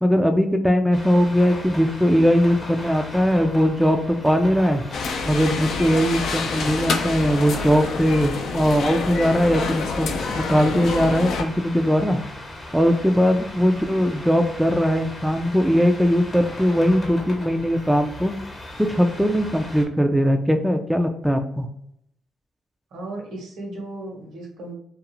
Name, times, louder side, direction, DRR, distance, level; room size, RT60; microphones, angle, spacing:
voice 1, 0.0-4.8 5.2-12.2 12.7-18.3 18.9-21.7, equal, 5° right, 5 dB, 0.3 m, -20 dB
sound 1, 0.9-19.8, left 1 dB, 30° left, 0.7 m, -38 dB
sound 2, 4.9-11.4, left 4 dB, 70° left, 0.4 m, -27 dB
voice 2, 22.9-24.8, right 2 dB, 80° right, 0 dB, 0.9 m, -35 dB
2.4 x 2.4 x 2.9 m, 0.74 s
cardioid pair, 85°, 0 cm